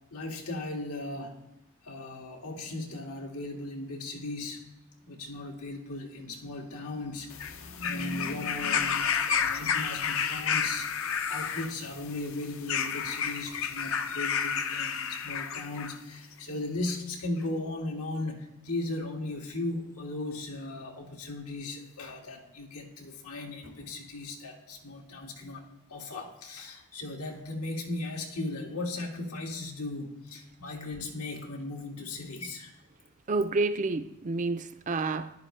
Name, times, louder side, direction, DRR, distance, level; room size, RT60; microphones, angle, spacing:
voice 1, 0.1-1.4 1.8-4.6 5.0-10.9 11.3-32.7, left 2 dB, 85° left, 1 dB, 2.0 m, -37 dB
sound 1, 7.3-16.0 16.9-17.0, left 7 dB, 60° left, 0.7 m, -31 dB
voice 2, 33.3-35.3, right 3 dB, 35° right, 10 dB, 0.5 m, -29 dB
14.0 x 11.0 x 3.2 m, 0.97 s
head